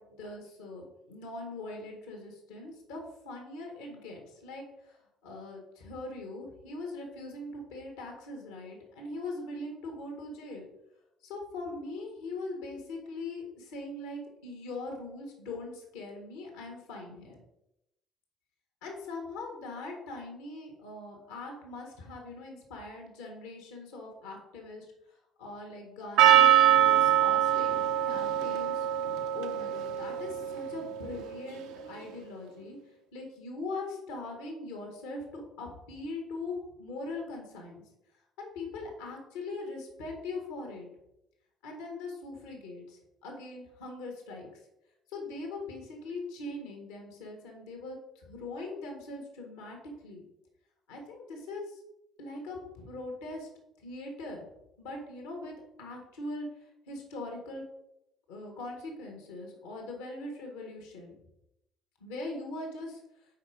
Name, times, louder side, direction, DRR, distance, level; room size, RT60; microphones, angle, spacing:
voice 1, 0.0-10.7 11.2-17.4 18.8-24.9 25.4-28.9 29.3-32.8 33.1-37.8 38.4-40.9 41.6-44.5 45.1-49.8 50.0-50.2 50.9-51.8 52.2-53.5 53.8-54.5 54.8-57.6 58.3-61.2 62.0-63.0, left 2 dB, 70° left, 1 dB, 1.7 m, -41 dB
Percussion, 26.2-31.1, right 11 dB, 65° right, 0.6 m, -24 dB
5.6 x 5.0 x 4.7 m, 0.86 s
figure-of-eight pair, 50°, 0 cm